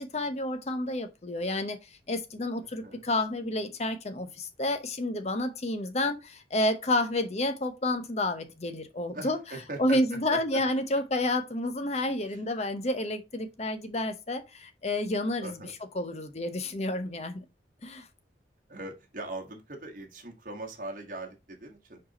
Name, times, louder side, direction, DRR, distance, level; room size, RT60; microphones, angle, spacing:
voice 1, 0.0-1.8 2.1-9.4 9.8-15.6 15.9-17.4 17.8-18.1, left 1 dB, 40° left, 0.8 m, -30 dB
voice 2, 2.6-3.0 9.1-10.6 15.4-15.7 18.7-22.0, right 2 dB, 50° right, 1.5 m, -40 dB
4.8 x 4.8 x 4.1 m
head